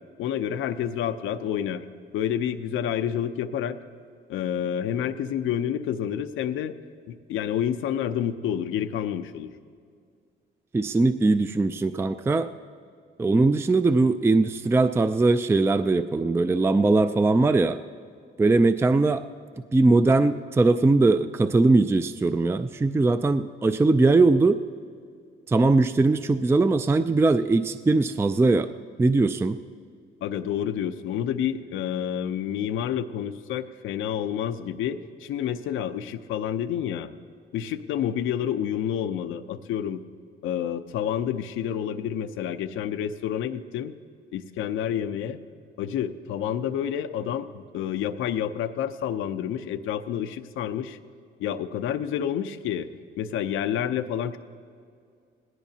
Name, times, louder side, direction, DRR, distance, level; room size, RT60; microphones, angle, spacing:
voice 1, 0.2-1.8 2.1-3.8 4.3-6.7 7.1-9.5 30.2-37.1 37.5-40.0 40.4-43.9 44.3-45.4 45.8-51.0 51.4-52.9 53.2-54.4, left 9 dB, 85° left, 9 dB, 0.6 m, -29 dB
voice 2, 10.7-12.5 13.2-17.8 18.4-19.2 19.7-24.6 25.5-28.7 29.0-29.6, right 3 dB, 10° right, 11 dB, 0.4 m, -20 dB
18.5 x 17.5 x 2.8 m, 2.2 s
cardioid pair, 90°, 20 cm